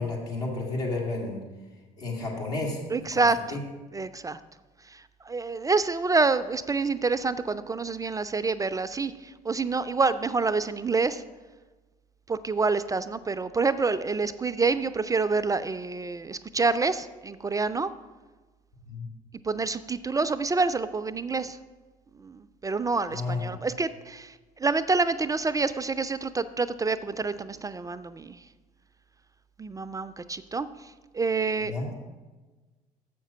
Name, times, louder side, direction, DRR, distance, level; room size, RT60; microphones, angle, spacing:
voice 1, 0.0-1.4 2.0-2.8 3.1-3.6 18.9-19.1 23.1-23.5 31.6-31.9, left 3 dB, 85° left, -3 dB, 1.9 m, -31 dB
voice 2, 2.9-3.6 3.9-4.4 4.9-11.2 12.3-17.9 19.4-21.6 22.1-28.4 29.6-31.7, right 4 dB, 15° right, 12 dB, 0.3 m, -27 dB
7.3 x 5.9 x 5.5 m, 1.3 s
hypercardioid pair, 55°, 20 cm